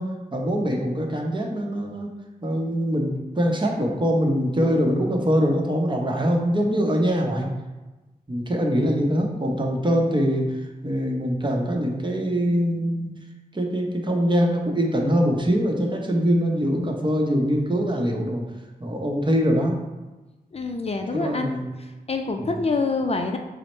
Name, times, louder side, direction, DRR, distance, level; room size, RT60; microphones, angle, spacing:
voice 1, 0.0-2.1 2.4-7.5 8.3-13.1 13.5-18.4 18.8-19.8 21.1-21.6 22.4-22.6, equal, 30° right, 0 dB, 0.8 m, -23 dB
voice 2, 20.5-21.5 21.8-23.4, left 3 dB, 40° left, 4 dB, 0.4 m, -26 dB
4.7 x 2.1 x 4.2 m, 1.1 s
cardioid pair, 55°, 16 cm